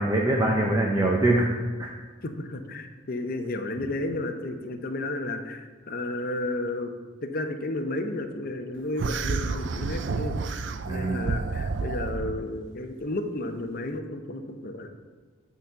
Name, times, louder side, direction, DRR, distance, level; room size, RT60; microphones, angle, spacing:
voice 1, 0.0-1.5 1.8-1.9 10.9-11.3, right 1 dB, 15° right, -1 dB, 0.6 m, -23 dB
voice 2, 2.2-6.9 7.2-10.4 10.9-14.9, left 2 dB, 45° left, 6 dB, 0.6 m, -32 dB
sound 1, 9.0-12.4, right 4 dB, 60° right, 0.4 m, -30 dB
8.9 x 4.0 x 5.6 m, 1.4 s
head